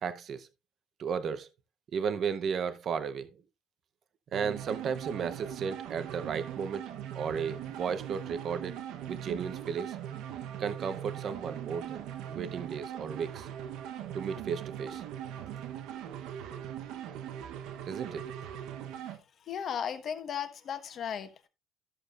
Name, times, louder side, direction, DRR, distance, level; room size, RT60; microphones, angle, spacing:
voice 1, 0.0-0.5 1.0-1.5 1.9-3.3 4.3-6.9 7.1-8.8 9.1-10.0 10.6-13.5 14.1-15.1 17.9-18.2, right 6 dB, 40° right, 0.7 m, -34 dB
sound 1, 4.3-19.2, right 10 dB, 90° right, 0.9 m, -40 dB
voice 2, 19.5-21.5, left 8 dB, 40° left, 1.1 m, -36 dB
13.5 x 6.8 x 2.4 m
cardioid pair, 165°, 0 cm